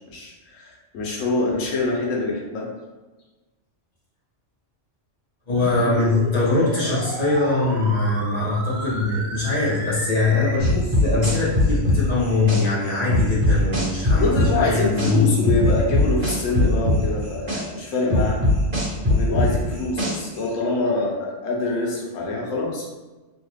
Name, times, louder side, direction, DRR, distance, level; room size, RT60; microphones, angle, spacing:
voice 1, 0.1-2.7 14.2-18.4 19.1-22.9, left 3 dB, 90° left, -2 dB, 1.1 m, -25 dB
voice 2, 5.5-15.3, left 3 dB, 35° left, -8 dB, 0.9 m, -22 dB
sound 1, 5.5-10.6, right 2 dB, 55° right, 0.5 m, -33 dB
sound 2, 10.6-12.6 13.1-15.1 15.4-17.6 18.1-20.4, left 1 dB, 35° right, 1.2 m, -20 dB
2.9 x 2.3 x 3.2 m, 1.2 s
omnidirectional pair, 1.3 m